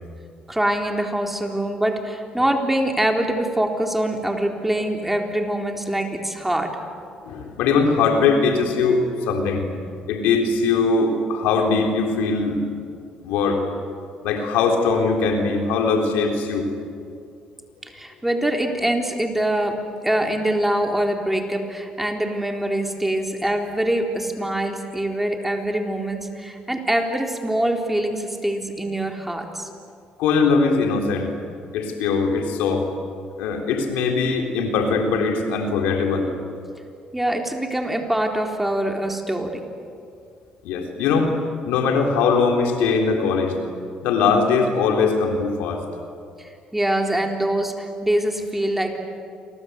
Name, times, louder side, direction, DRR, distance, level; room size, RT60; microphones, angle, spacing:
voice 1, 0.5-6.8 17.8-29.7 37.1-39.6 46.4-49.0, right 1 dB, 5° right, 3 dB, 3.9 m, -24 dB
voice 2, 7.3-9.7 10.1-12.6 13.2-13.6 14.2-16.7 30.2-31.3 31.7-32.9 33.4-36.3 40.6-41.3 41.7-43.6 44.0-45.8, left 4 dB, 90° left, 3 dB, 3.8 m, -21 dB
29.5 x 24.0 x 8.2 m, 2.4 s
cardioid pair, 85°, 3 cm